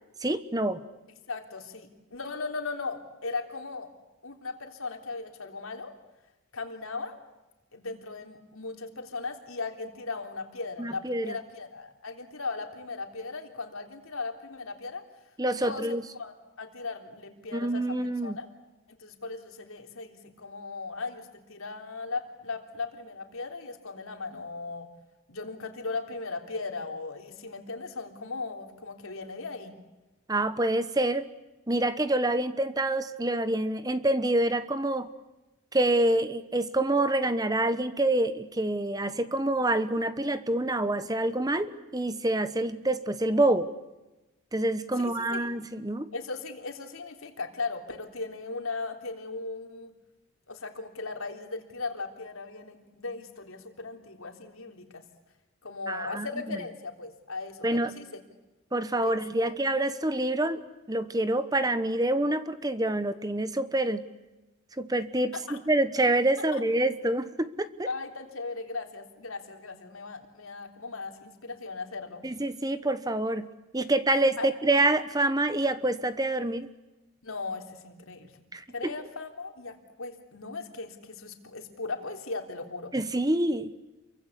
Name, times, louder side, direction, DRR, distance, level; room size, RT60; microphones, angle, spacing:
voice 1, 0.2-0.8 10.8-11.3 15.4-16.0 17.5-18.4 30.3-31.3 31.7-35.1 35.7-43.7 44.5-46.1 55.9-56.6 57.6-57.9 58.7-60.6 60.9-64.0 64.8-67.9 72.2-73.5 73.7-76.7 78.5-78.9 82.9-83.7, right 1 dB, 20° right, 12 dB, 1.0 m, -27 dB
voice 2, 1.3-3.9 4.2-5.9 6.5-7.2 7.7-15.0 15.6-15.9 16.1-18.0 18.2-18.5 19.0-24.9 25.3-29.8 45.0-45.5 46.1-49.9 50.5-55.1 55.6-58.1 59.0-59.5 65.3-65.6 66.5-66.6 67.9-72.2 74.1-74.5 77.2-78.4 78.7-82.9, left 3 dB, 85° left, 4 dB, 3.6 m, -37 dB
28.5 x 24.0 x 8.3 m, 1.1 s
head